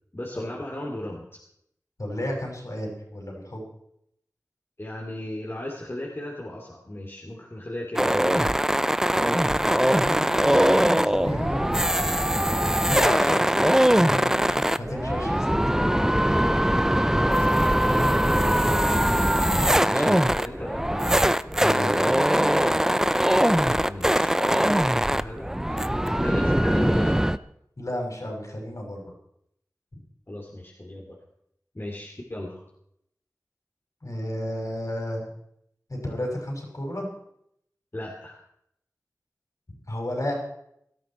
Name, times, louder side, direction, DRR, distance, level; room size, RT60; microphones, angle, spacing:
voice 1, 0.1-1.3 4.8-8.8 17.1-19.3 20.3-21.2 23.7-27.3 30.3-31.2 31.7-32.6 37.9-38.4, left 1 dB, 40° left, -2 dB, 2.7 m, -36 dB
voice 2, 2.0-3.6 9.9-11.8 12.8-16.4 19.7-20.2 21.6-22.4 27.8-29.0 29.9-30.0 34.0-35.3 35.9-37.1 39.9-40.3, left 1 dB, 60° left, -1 dB, 6.2 m, -32 dB
sound 1, 8.0-27.4, equal, 10° right, 0.5 m, -21 dB
18.0 x 13.0 x 4.4 m, 0.74 s
wide cardioid pair, 45°, 6 cm